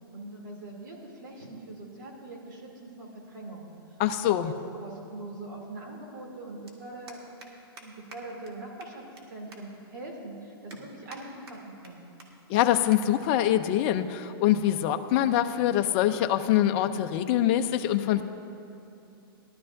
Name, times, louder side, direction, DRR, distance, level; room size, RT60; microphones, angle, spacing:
voice 1, 0.1-3.7 4.3-7.2 7.8-12.1, right 2 dB, 55° right, -1 dB, 2.7 m, -42 dB
voice 2, 4.0-4.5 12.5-18.2, left 12 dB, 25° left, 7 dB, 0.4 m, -24 dB
sound 1, 6.7-6.8 7.1-7.5 7.8-7.9 8.1-8.2 8.5-8.6 8.8-9.2 9.5-9.6 10.1-10.2 10.7-11.2 11.5-11.9 12.2-12.3 12.5-12.6 12.9-13.0 13.3-13.6 14.3-14.6, right 3 dB, 80° right, 1.9 m, -48 dB
19.0 x 12.0 x 2.6 m, 2.7 s
hypercardioid pair, 160°, 13 cm